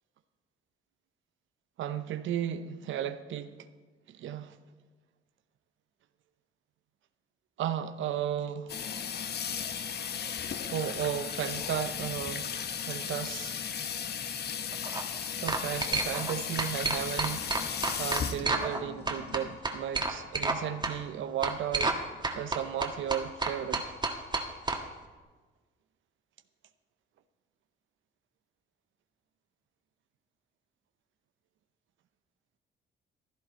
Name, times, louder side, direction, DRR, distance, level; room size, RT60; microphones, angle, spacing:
voice 1, 1.8-3.5 4.1-4.6 7.6-8.7 10.7-12.6 12.9-13.5 15.4-17.5 18.0-22.0 22.3-23.8, right 10 dB, 75° right, 0.7 m, -34 dB
Water tap faucet / Sink (filling or washing), 8.7-19.6, left 7 dB, 55° left, 1.0 m, -36 dB
sound 1, 14.7-15.0 15.5-16.3 16.6-18.8 19.1-20.6 20.8-20.9 21.4-22.0 22.2-24.8, right 3 dB, 20° right, 1.5 m, -30 dB
15.5 x 12.0 x 4.4 m
cardioid pair, 90°, 20 cm